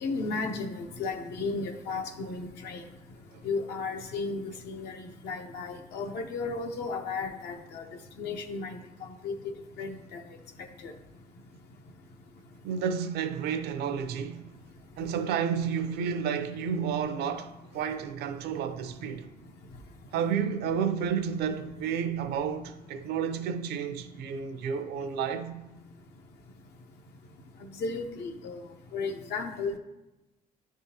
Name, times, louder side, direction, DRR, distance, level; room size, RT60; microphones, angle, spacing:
voice 1, 0.0-2.8 3.4-7.8 8.2-9.3 9.8-10.2 10.8-10.9 27.8-28.6 28.9-29.8, left 4 dB, 80° left, 0.8 m, -34 dB
voice 2, 12.6-14.4 15.0-19.3 20.1-25.6, right 7 dB, 75° right, 0.6 m, -31 dB
10.5 x 3.6 x 2.8 m
cardioid pair, 110°, 17 cm